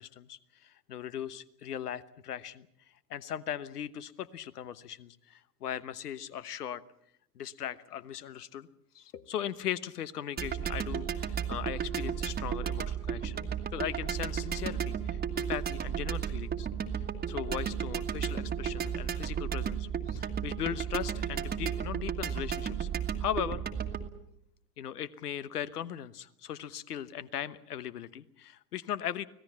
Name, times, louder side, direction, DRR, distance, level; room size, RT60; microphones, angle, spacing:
voice 1, 0.0-2.7 3.1-6.8 7.3-8.7 8.9-16.7 16.9-22.9 23.2-23.6 24.8-29.2, left 10 dB, 65° left, 16 dB, 1.2 m, -38 dB
sound 1, 10.4-24.1, right 8 dB, 20° right, 1.6 m, -34 dB
25.0 x 17.5 x 7.1 m, 0.74 s
figure-of-eight pair, 85°, 49 cm